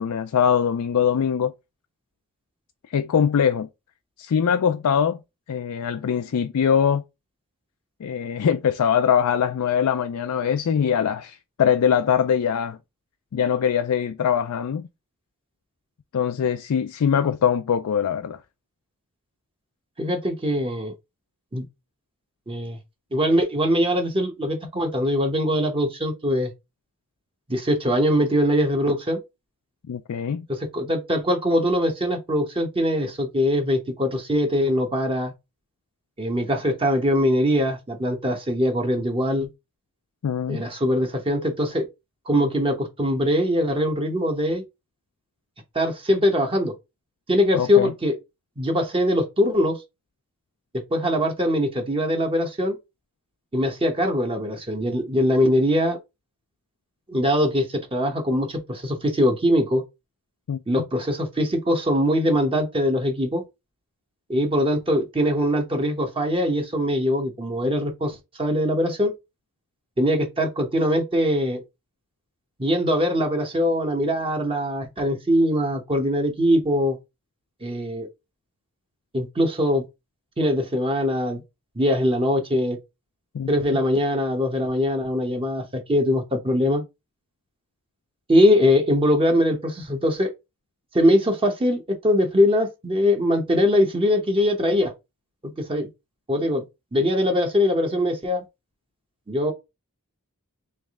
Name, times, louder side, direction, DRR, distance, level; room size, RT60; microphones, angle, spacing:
voice 1, 0.0-1.5 2.9-3.7 4.2-5.2 5.5-7.0 8.0-12.8 13.3-14.9 16.1-18.4 29.9-30.5 40.2-40.6 47.5-47.9 60.5-60.6 83.3-83.5, left 8 dB, 75° left, 0.4 m, -22 dB
voice 2, 20.0-21.0 21.5-21.6 22.5-22.8 23.1-26.5 27.5-29.2 30.5-35.3 36.2-39.5 40.5-41.9 42.3-44.6 45.7-46.7 47.3-48.2 48.6-49.8 50.9-52.8 53.5-56.0 57.1-59.8 60.7-63.4 64.3-69.1 70.0-71.6 72.6-77.0 77.6-78.1 79.1-79.8 80.4-81.4 81.8-82.8 83.5-86.8 88.3-90.3 90.9-94.9 95.6-95.9 96.3-96.6 96.9-98.4 99.3-99.5, equal, 25° right, 0.9 m, -22 dB
3.4 x 3.1 x 3.5 m
head